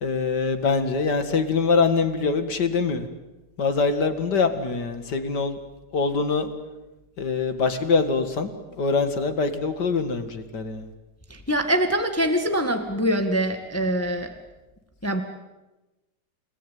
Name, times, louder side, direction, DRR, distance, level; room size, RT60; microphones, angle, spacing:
voice 1, 0.0-3.1 3.6-5.6 5.9-6.5 7.2-8.5 8.8-10.9, left 4 dB, 75° left, 9 dB, 2.6 m, -24 dB
voice 2, 11.3-14.3 15.0-15.2, equal, 10° left, 6 dB, 1.8 m, -24 dB
30.0 x 18.5 x 9.4 m, 1.1 s
omnidirectional pair, 1.8 m